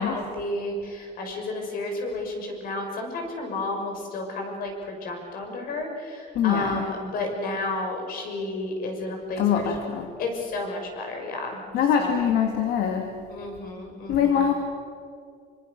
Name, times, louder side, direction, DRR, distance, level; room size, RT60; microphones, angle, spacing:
voice 1, 0.0-9.6 10.2-11.6 12.0-12.1 13.3-14.4, left 2 dB, 60° left, 3 dB, 6.5 m, -32 dB
voice 2, 6.4-6.9 9.4-10.1 11.7-13.1 14.1-14.5, left 8 dB, 80° left, 3 dB, 2.3 m, -23 dB
27.0 x 25.0 x 6.6 m, 2.4 s
cardioid pair, 165°, 17 cm